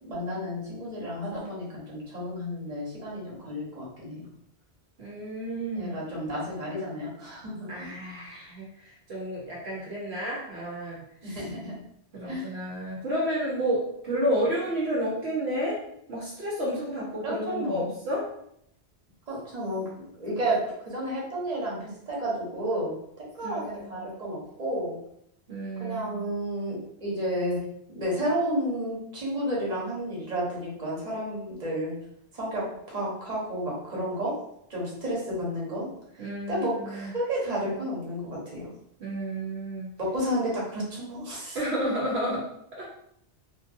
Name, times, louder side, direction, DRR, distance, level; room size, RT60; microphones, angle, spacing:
voice 1, 0.0-4.2 5.8-7.9 11.2-11.8 12.2-12.5 17.2-17.9 19.3-22.9 23.4-24.9 25.8-27.6 27.9-31.9 32.3-34.3 34.7-35.9 36.1-38.7 40.0-41.6, equal, 40° right, -5 dB, 1.2 m, -31 dB
voice 2, 5.0-5.9 7.7-11.4 12.1-15.8 16.1-18.3 23.4-24.0 25.5-26.3 36.2-37.1 39.0-39.9 41.5-42.4 42.8-42.9, equal, 70° right, -5 dB, 1.0 m, -31 dB
3.1 x 2.6 x 2.6 m, 0.74 s
omnidirectional pair, 1.2 m